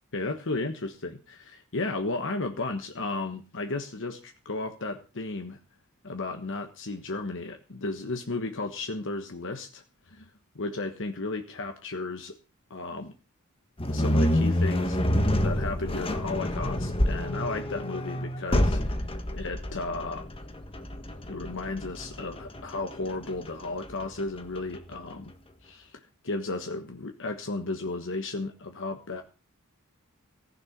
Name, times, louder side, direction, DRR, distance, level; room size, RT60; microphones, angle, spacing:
voice 1, 0.1-5.6 6.0-10.2 10.5-12.4 12.7-13.1 13.9-19.1 19.3-20.2 21.3-25.3 25.6-29.2, left 3 dB, 60° left, 6 dB, 1.4 m, -34 dB
sound 1, 13.8-24.9, left 1 dB, 25° left, 1.6 m, -28 dB
15.5 x 10.5 x 6.0 m, 0.34 s
head